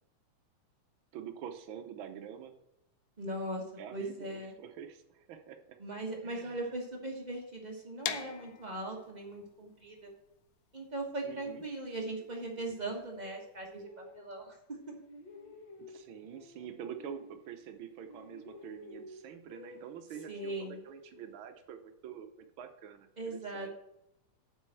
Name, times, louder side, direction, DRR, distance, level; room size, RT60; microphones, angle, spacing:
voice 1, 1.1-2.6 3.8-5.8 6.2-6.7 11.2-11.6 15.8-23.7, right 8 dB, 70° right, 6 dB, 1.2 m, -46 dB
voice 2, 3.2-3.6 3.9-4.5 5.8-10.1 10.7-14.6 14.9-15.0 20.3-20.8 23.2-23.8, right 2 dB, 55° right, -1 dB, 0.4 m, -39 dB
sound 1, 8.0-13.8, left 10 dB, 90° left, 2.1 m, -43 dB
sound 2, 11.8-14.6 14.9-17.8 18.1-21.6, left 2 dB, 65° left, 1.2 m, -54 dB
8.0 x 5.5 x 7.7 m, 0.82 s
omnidirectional pair, 3.3 m